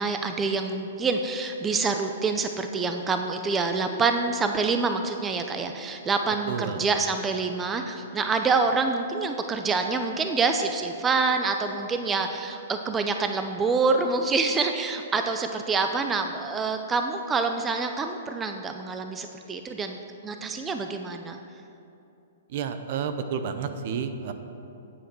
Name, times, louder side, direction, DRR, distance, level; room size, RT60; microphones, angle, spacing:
voice 1, 0.0-20.0 20.2-21.4, right 4 dB, 15° right, 6 dB, 0.6 m, -26 dB
voice 2, 6.5-6.8 22.5-24.3, right 7 dB, 55° right, 9 dB, 0.8 m, -30 dB
9.8 x 7.8 x 6.1 m, 2.7 s
hypercardioid pair, 135°, 0 cm